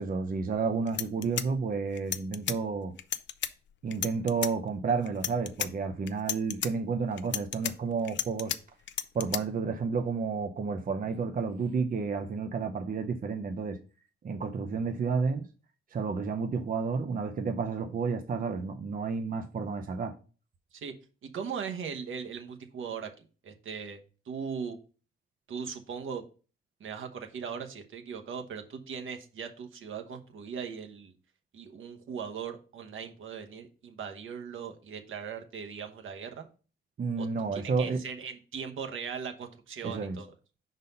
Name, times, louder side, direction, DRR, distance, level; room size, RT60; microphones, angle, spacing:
voice 1, 0.0-2.9 3.8-8.5 9.1-13.8 14.2-15.5 15.9-20.1 37.0-38.0 39.8-40.2, right 5 dB, 45° right, 0.6 m, -31 dB
sound 1, 0.5-0.6 0.9-2.6 3.0-3.5 3.9-4.5 5.1-5.7 6.1-6.7 7.2-8.6 8.9-9.4, left 9 dB, 60° left, 0.5 m, -33 dB
voice 2, 21.2-24.0 24.2-24.8 25.5-26.2 26.8-31.1 31.5-36.5 37.2-37.3 37.5-40.3, right 6 dB, 75° right, 1.1 m, -39 dB
5.4 x 4.0 x 5.3 m
cardioid pair, 95°, 21 cm